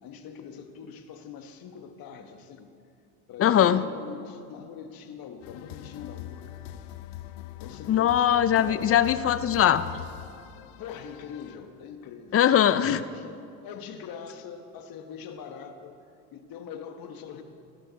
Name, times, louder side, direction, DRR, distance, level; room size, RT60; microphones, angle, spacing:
voice 1, 0.0-2.7 3.3-6.6 7.6-8.9 10.8-12.5 13.0-16.0 16.3-17.4, left 7 dB, 50° left, 7 dB, 1.4 m, -43 dB
voice 2, 3.4-3.8 7.9-9.9 12.3-13.0, left 10 dB, 30° left, 14 dB, 0.5 m, -21 dB
sound 1, 5.4-11.6, left 13 dB, 75° left, 0.8 m, -42 dB
18.5 x 11.0 x 4.0 m, 2.6 s
supercardioid pair, 85°, 44 cm